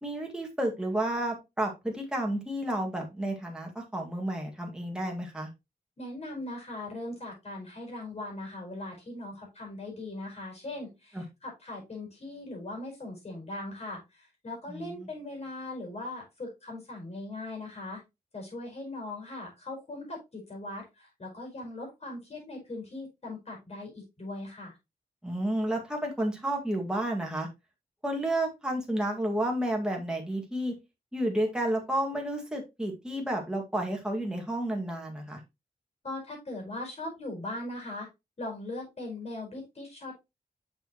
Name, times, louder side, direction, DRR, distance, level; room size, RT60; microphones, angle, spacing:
voice 1, 0.0-5.5 11.1-11.2 14.7-15.1 25.2-27.5 28.0-30.7 31.1-35.4, right 1 dB, 5° right, 0 dB, 1.9 m, -31 dB
voice 2, 6.0-18.0 18.3-24.8 36.0-38.1 38.4-40.1, left 2 dB, 40° left, 0 dB, 4.7 m, -40 dB
6.9 x 6.9 x 3.0 m, 0.23 s
wide cardioid pair, 160°, 16 cm